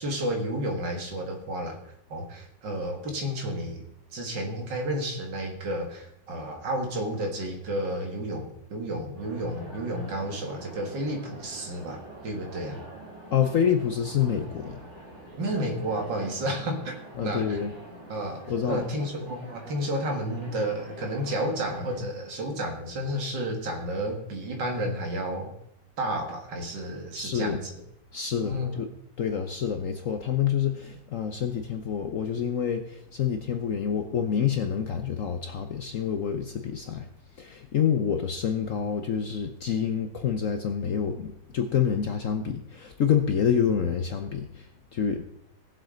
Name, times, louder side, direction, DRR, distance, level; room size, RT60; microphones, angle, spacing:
voice 1, 0.0-1.8 2.1-3.8 4.1-12.8 15.4-16.9 17.2-17.6 18.1-25.5 26.0-27.8 28.4-28.8, right 1 dB, 70° right, 3 dB, 2.4 m, -31 dB
sound 1, 9.1-22.0, right 2 dB, 35° right, 4.0 m, -45 dB
voice 2, 13.3-14.8 17.2-17.7 18.5-18.9 27.2-27.6 28.1-28.9 29.2-37.1 37.4-45.2, left 8 dB, 60° left, 6 dB, 0.9 m, -27 dB
18.5 x 7.4 x 3.8 m, 0.79 s
omnidirectional pair, 2.0 m